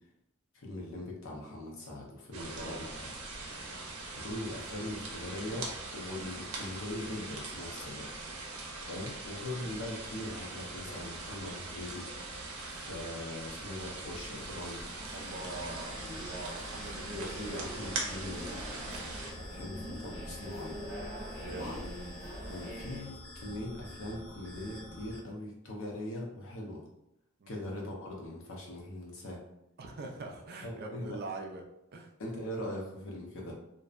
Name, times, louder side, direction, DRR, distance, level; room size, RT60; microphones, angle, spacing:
voice 1, 0.5-3.1 4.1-8.1 8.9-12.4 12.7-14.8 16.0-16.3 17.1-18.5 19.4-20.8 21.5-21.9 22.5-26.8 27.5-29.4 30.6-31.2 32.2-33.5, left 1 dB, 65° left, -1 dB, 0.6 m, -41 dB
sound 1, 2.3-19.3, right 3 dB, 90° right, 0.6 m, -42 dB
voice 2, 2.4-2.9 3.6-3.9 15.1-17.9 18.8-19.0 21.4-21.7 27.4-27.6 29.8-31.6 31.9-32.1, right 3 dB, 45° right, 1 dB, 0.3 m, -44 dB
sound 2, 14.0-23.0, equal, 15° right, 0.8 m, -45 dB
sound 3, 15.2-25.2, left 1 dB, 10° left, 0.5 m, -47 dB
2.6 x 2.0 x 2.4 m, 0.83 s
head